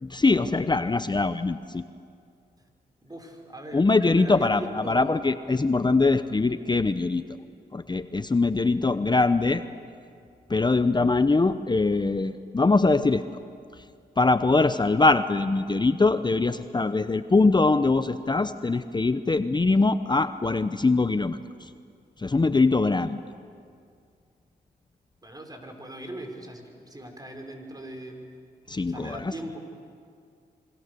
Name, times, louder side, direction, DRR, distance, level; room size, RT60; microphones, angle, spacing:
voice 1, 0.0-1.8 3.7-7.2 7.7-9.6 10.5-13.2 14.2-21.4 22.2-23.2 28.7-29.2, left 3 dB, 25° left, 11 dB, 0.9 m, -22 dB
voice 2, 3.0-5.2 25.2-28.2 28.9-29.6, right 1 dB, 20° right, 4 dB, 5.5 m, -40 dB
26.5 x 24.5 x 7.0 m, 2.3 s
supercardioid pair, 50°, 17 cm